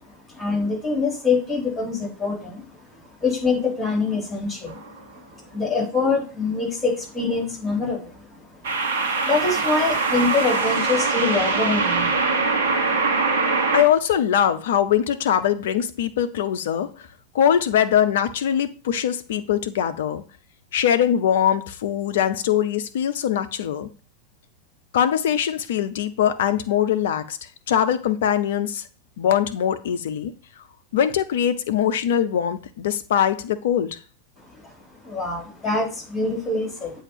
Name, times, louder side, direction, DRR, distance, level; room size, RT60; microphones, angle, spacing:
voice 1, 0.1-2.6 3.2-4.9 5.3-8.4 8.9-12.2 12.9-13.1 34.5-34.7 35.0-37.0, left 4 dB, 10° left, 3.9 m, -25 dB
sound 1, 4.7-5.0 8.6-13.8, right 4 dB, 60° right, 1.2 m, -22 dB
voice 2, 13.7-16.9 17.3-20.2 20.7-23.9 24.9-27.4 27.7-28.8 29.2-30.3 30.9-34.0, left 9 dB, 55° left, 0.6 m, -22 dB
8.1 x 2.8 x 5.7 m
figure-of-eight pair, 90°, 0 cm